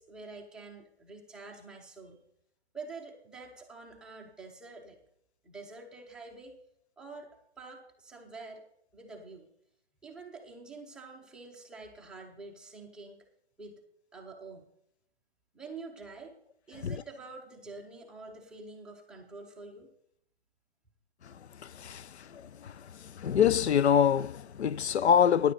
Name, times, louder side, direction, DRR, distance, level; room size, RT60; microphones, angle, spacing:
voice 1, 0.0-2.2 2.7-5.0 5.4-6.5 7.0-7.3 7.6-8.6 8.9-9.5 10.0-13.3 13.6-13.8 14.1-14.7 15.5-16.3 16.7-19.9, right 3 dB, ahead, 0.5 m, -47 dB
voice 2, 22.3-22.7 23.2-25.5, left 8 dB, 85° left, 0.5 m, -25 dB
14.5 x 10.0 x 4.0 m
hypercardioid pair, 145°, 32 cm